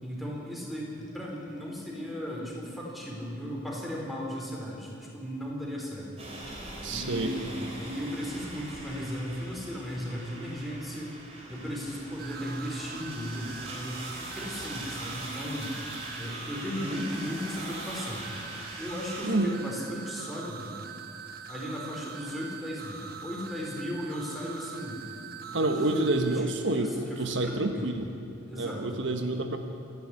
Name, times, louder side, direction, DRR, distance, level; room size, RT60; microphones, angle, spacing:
voice 1, 0.0-11.2 11.5-15.8 16.2-18.3 18.8-20.8 21.5-25.1 25.5-25.6 25.9-28.0 28.5-29.0, equal, ahead, -3 dB, 4.5 m, -36 dB
sound 1, 6.2-19.3, right 1 dB, 30° right, 4.3 m, -42 dB
voice 2, 6.8-7.3 19.2-19.6 25.5-28.0 28.6-29.6, right 2 dB, 70° right, 6 dB, 1.3 m, -28 dB
sound 2, 12.2-26.4, right 6 dB, 50° right, 1.2 m, -43 dB
26.5 x 11.0 x 9.8 m, 2.8 s
head